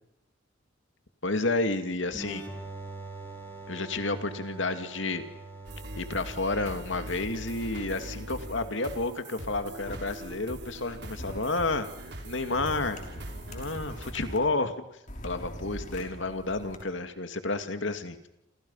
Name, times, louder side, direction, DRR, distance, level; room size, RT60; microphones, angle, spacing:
voice 1, 1.2-2.4 3.7-5.2 6.0-11.9 12.2-13.0 13.5-14.9 15.2-18.2, left 2 dB, 70° left, 8 dB, 2.5 m, -30 dB
sound 1, 2.1-9.6, right 2 dB, 10° left, 7.0 m, -44 dB
sound 2, 5.6-14.1, right 1 dB, 60° right, 5.2 m, -42 dB
sound 3, 9.9-10.0 11.2-11.4 12.5-14.4 15.1-16.8, equal, 40° left, 5.8 m, -41 dB
29.0 x 28.0 x 5.7 m, 0.81 s
head